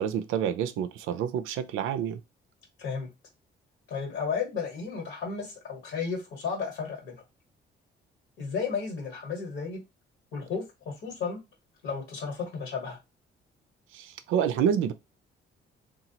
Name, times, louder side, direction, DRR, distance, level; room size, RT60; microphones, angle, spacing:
voice 1, 0.0-2.2 13.9-14.9, right 8 dB, 90° right, 0.4 m, -28 dB
voice 2, 3.9-7.2 8.4-9.8 10.3-11.4 11.8-13.0, left 5 dB, 80° left, 1.3 m, -33 dB
2.9 x 2.3 x 2.8 m
cardioid pair, 90°, 20 cm